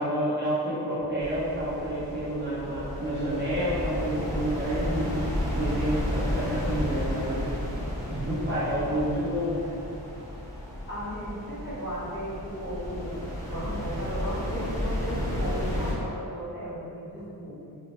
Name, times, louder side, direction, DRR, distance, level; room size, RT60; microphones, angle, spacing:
voice 1, 0.0-5.2 5.5-7.4 8.1-9.6, equal, 30° right, -12 dB, 0.7 m, -29 dB
sound 1, 1.2-16.0, left 1 dB, 10° left, 0.5 m, -32 dB
voice 2, 10.9-17.8, equal, 30° left, -12 dB, 1.1 m, -36 dB
2.3 x 2.2 x 2.8 m, 2.5 s
wide cardioid pair, 130°, 40 cm